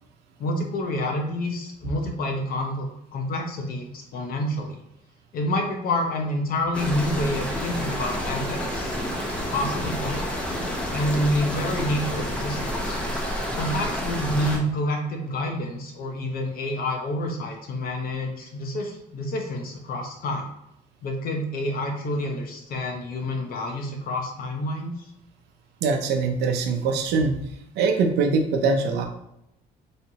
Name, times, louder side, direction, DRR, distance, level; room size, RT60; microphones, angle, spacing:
voice 1, 0.4-4.8 5.3-9.0 9.5-10.2 10.9-13.0 13.6-20.5 21.0-24.9, left 1 dB, 60° left, 2 dB, 1.0 m, -28 dB
sound 1, 6.7-14.6, equal, 5° left, 0.9 m, -29 dB
voice 2, 25.8-27.3 27.8-29.1, right 4 dB, 85° right, 5 dB, 0.7 m, -22 dB
4.1 x 3.3 x 2.8 m, 0.82 s
cardioid pair, 110°, 17 cm